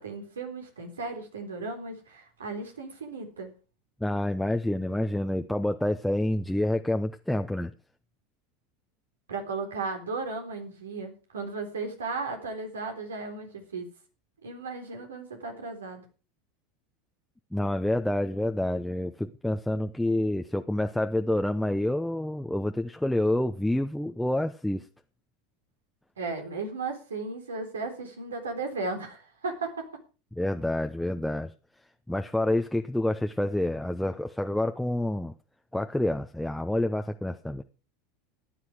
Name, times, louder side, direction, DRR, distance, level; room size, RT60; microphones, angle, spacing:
voice 1, 0.0-3.5 9.3-13.9 14.4-16.0 26.2-29.9, right 3 dB, 85° right, 4 dB, 3.7 m, -35 dB
voice 2, 4.0-7.7 17.5-24.8 30.4-31.5 32.1-35.3 35.7-37.6, left 1 dB, 5° left, 5 dB, 0.8 m, -28 dB
14.0 x 10.0 x 4.9 m, 0.35 s
hypercardioid pair, 85°, 0 cm